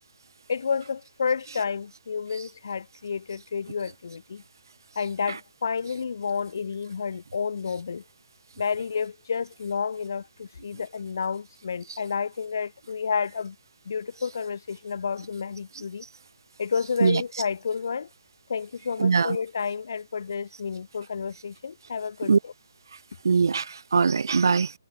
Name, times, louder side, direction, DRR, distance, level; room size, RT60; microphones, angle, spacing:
voice 1, 0.5-4.4 4.9-8.0 8.6-13.6 13.8-16.0 16.6-18.1 18.5-22.5, left 6 dB, 50° left, 1.1 m, -30 dB
voice 2, 19.0-19.4 22.2-22.4 23.2-24.7, right 5 dB, 60° right, 0.8 m, -21 dB
hypercardioid pair, 180°, 2 cm